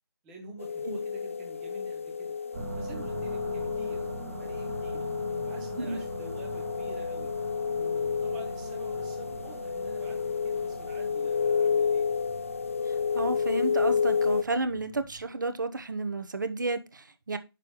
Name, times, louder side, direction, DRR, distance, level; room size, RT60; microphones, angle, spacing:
voice 1, 0.2-2.4 2.8-4.0 4.3-5.0 5.4-7.3 7.8-12.0, right 2 dB, 5° right, 0.7 m, -48 dB
sound 1, 0.6-14.4, left 6 dB, 30° left, 0.5 m, -30 dB
sound 2, 2.5-15.2, right 2 dB, 35° right, 1.7 m, -42 dB
voice 2, 13.1-17.4, right 3 dB, 50° right, 1.1 m, -31 dB
9.6 x 6.6 x 3.1 m
figure-of-eight pair, 165°, 13 cm